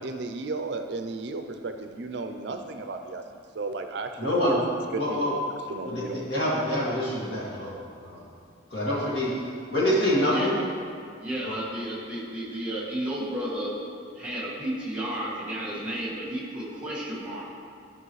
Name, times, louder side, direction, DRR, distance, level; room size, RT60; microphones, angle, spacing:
voice 1, 0.0-4.6 4.9-5.3 5.7-6.2 6.6-6.7, right 3 dB, 60° right, 6 dB, 0.5 m, -34 dB
voice 2, 4.2-4.6 5.0-5.3 5.9-8.2 8.7-9.4 9.7-10.6 11.4-11.5, equal, 60° left, -7 dB, 2.2 m, -26 dB
voice 3, 11.2-13.7 14.1-17.5, right 1 dB, 5° right, -7 dB, 2.0 m, -32 dB
13.0 x 5.5 x 3.2 m, 2.3 s
head